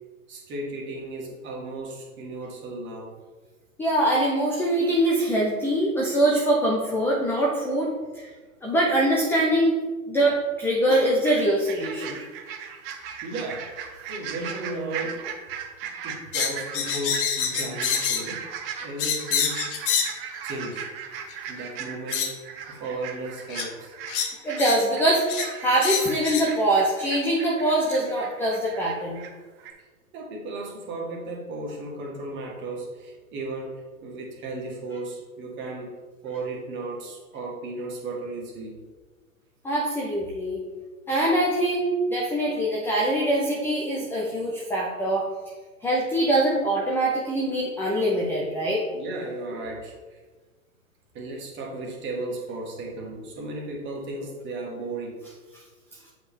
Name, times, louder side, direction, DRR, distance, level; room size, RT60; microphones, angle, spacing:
voice 1, 0.3-3.1 8.3-8.4 13.2-15.2 16.0-18.4 18.8-19.6 20.4-20.9 21.5-22.3 22.7-23.9 30.1-35.9 36.2-38.8 48.9-50.2 51.1-55.2, right 2 dB, 25° right, -2 dB, 1.8 m, -35 dB
voice 2, 3.8-7.9 8.1-8.3 8.6-9.8 10.1-12.2 24.4-25.2 25.6-29.2 39.6-40.6 41.1-45.3 45.8-48.8, right 1 dB, 5° left, -3 dB, 0.6 m, -23 dB
sound 1, 11.2-29.3 29.6-29.7, right 7 dB, 40° right, 1.1 m, -38 dB
sound 2, 16.3-18.3 19.0-20.2 21.3-21.4 22.1-22.3 23.5-23.7 24.1-24.8 25.3-25.5 25.8-26.5, left 7 dB, 40° left, 0.9 m, -27 dB
7.8 x 4.8 x 3.6 m, 1.3 s
hypercardioid pair, 115°, 43 cm